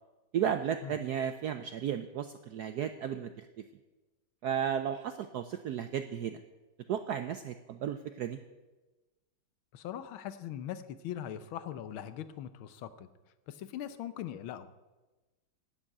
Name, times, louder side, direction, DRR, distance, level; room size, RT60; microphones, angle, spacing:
voice 1, 0.3-3.6 4.4-6.4 6.9-8.4, right 9 dB, 80° right, 9 dB, 0.9 m, -34 dB
voice 2, 9.7-13.1 13.5-14.7, left 10 dB, 80° left, 12 dB, 1.6 m, -41 dB
11.0 x 7.9 x 8.5 m, 1.2 s
omnidirectional pair, 2.3 m